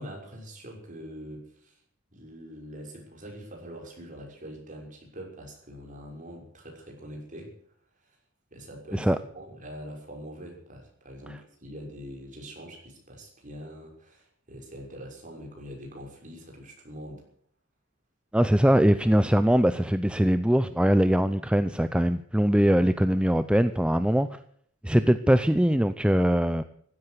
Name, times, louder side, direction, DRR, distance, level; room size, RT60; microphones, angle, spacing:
voice 1, 0.0-1.8 2.1-7.5 8.0-8.2 8.5-17.2 24.9-25.1, equal, 40° right, 1 dB, 6.2 m, -43 dB
voice 2, 18.3-24.4 24.8-26.6, equal, 5° right, 11 dB, 0.6 m, -22 dB
15.5 x 13.0 x 6.8 m, 0.63 s
head